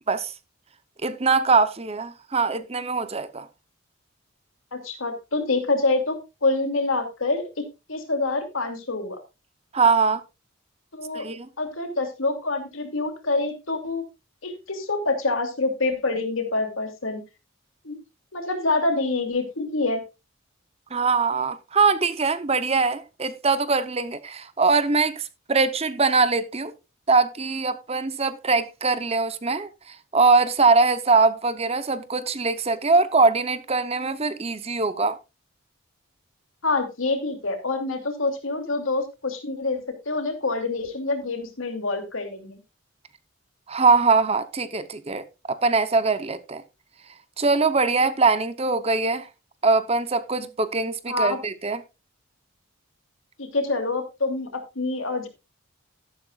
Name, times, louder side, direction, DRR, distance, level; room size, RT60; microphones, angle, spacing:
voice 1, 1.0-3.5 9.7-10.2 11.1-11.5 20.9-26.7 27.1-35.2 43.7-46.6 47.4-49.3 49.6-51.8, right 4 dB, 30° right, 0.8 m, -22 dB
voice 2, 4.7-7.5 7.9-9.2 10.9-11.3 11.6-14.0 14.4-17.2 17.8-18.0 18.3-20.0 36.6-42.6 51.1-51.4 53.4-55.3, left 3 dB, 75° left, 2.7 m, -26 dB
13.0 x 11.5 x 2.4 m
head